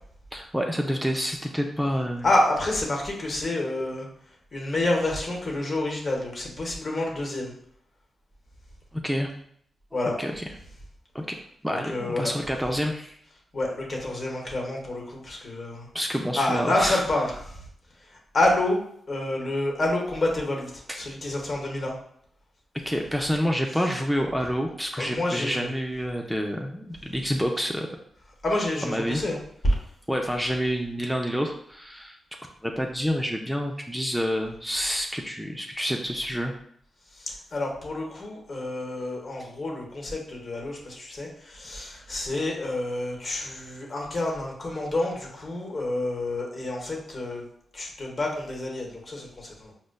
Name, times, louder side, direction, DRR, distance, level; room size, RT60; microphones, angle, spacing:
voice 1, 0.3-2.3 8.9-9.3 9.9-10.4 11.1-11.2 11.6-13.2 15.9-17.2 20.9-21.0 22.9-27.9 28.8-29.2 30.1-32.2 32.6-36.5, equal, ahead, 1 dB, 0.5 m, -28 dB
voice 2, 2.2-4.1 4.5-7.5 9.9-10.2 11.7-12.3 13.5-15.9 16.4-17.3 18.3-18.8 19.1-21.9 25.0-25.7 28.4-29.4 29.6-29.7 37.2-47.4 47.7-49.7, left 1 dB, 50° left, -1 dB, 1.0 m, -28 dB
5.0 x 2.1 x 2.2 m, 0.67 s
supercardioid pair, 50°, 0 cm